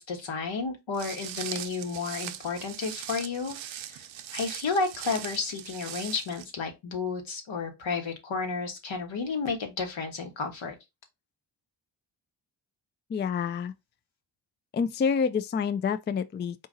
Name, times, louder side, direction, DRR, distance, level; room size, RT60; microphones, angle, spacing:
voice 1, 0.0-3.6 3.9-4.0 4.3-10.7, left 4 dB, 70° left, 1.3 m, -32 dB
Walk footsteps, 0.9-6.4, right 11 dB, 70° right, 0.6 m, -40 dB
voice 2, 13.1-13.7 14.7-16.7, left 6 dB, 25° left, 0.3 m, -28 dB
4.0 x 2.5 x 3.8 m
supercardioid pair, 45°, 49 cm